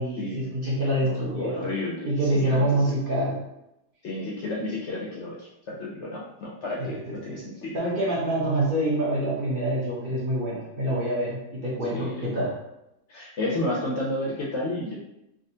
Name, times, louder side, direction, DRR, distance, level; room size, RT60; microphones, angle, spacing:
voice 1, 0.0-1.7 2.0-3.4 6.8-7.4 7.7-12.5, right 1 dB, 45° right, -7 dB, 0.9 m, -26 dB
voice 2, 1.0-2.7 4.0-6.9 7.2-7.8 11.9-12.3 13.1-15.0, left 1 dB, 60° left, -4 dB, 0.8 m, -32 dB
3.5 x 2.4 x 2.7 m, 0.86 s
omnidirectional pair, 1.6 m